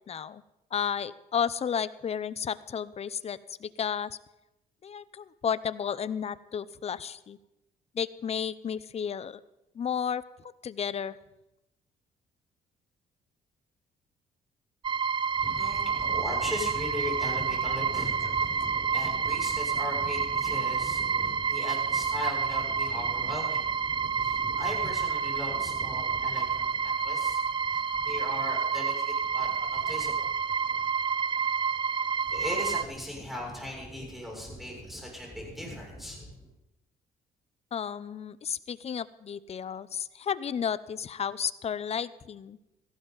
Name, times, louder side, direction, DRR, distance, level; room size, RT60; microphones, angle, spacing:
voice 1, 0.1-0.4 0.7-4.2 4.8-7.4 7.9-9.4 9.7-10.2 10.6-11.2 18.6-18.7 37.7-42.6, left 7 dB, 40° left, 17 dB, 0.6 m, -32 dB
sound 1, 14.8-32.8, right 6 dB, 30° right, 0.5 m, -29 dB
voice 2, 15.4-27.4 27.7-30.3 30.7-30.8 32.3-36.3, left 1 dB, ahead, -2 dB, 6.6 m, -38 dB
17.0 x 15.0 x 4.0 m, 0.90 s
cardioid pair, 95°, 16 cm